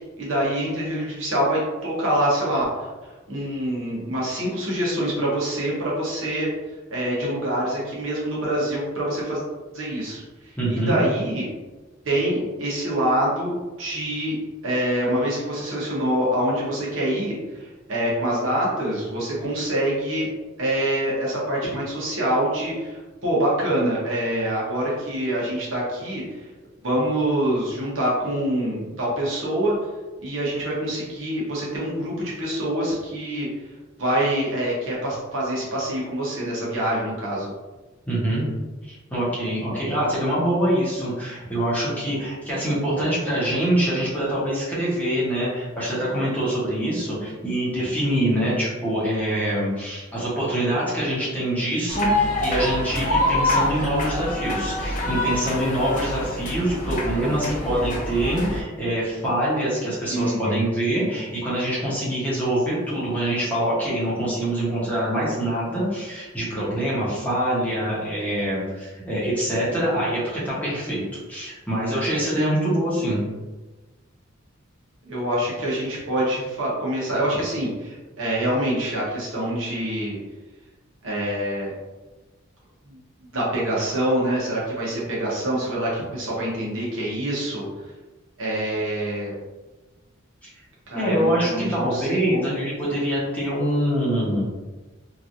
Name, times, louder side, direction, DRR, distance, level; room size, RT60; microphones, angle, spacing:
voice 1, 0.2-2.9 3.3-6.5 6.9-9.4 9.7-10.2 10.7-11.5 12.0-17.3 17.6-20.3 20.6-26.4 26.8-29.8 30.2-33.5 34.0-37.5 60.1-60.7 75.0-80.2 81.0-81.7 82.9-83.0 83.3-87.6 88.4-89.3 90.9-92.6, right 1 dB, 65° right, -5 dB, 1.0 m, -25 dB
voice 2, 10.6-11.0 38.1-38.4 38.9-71.0 71.3-73.2 90.4-90.5 90.9-94.4, right 1 dB, 10° left, -9 dB, 0.9 m, -24 dB
sound 1, 51.9-58.6, left 1 dB, 40° left, 0.7 m, -25 dB
3.0 x 2.5 x 2.6 m, 1.2 s
head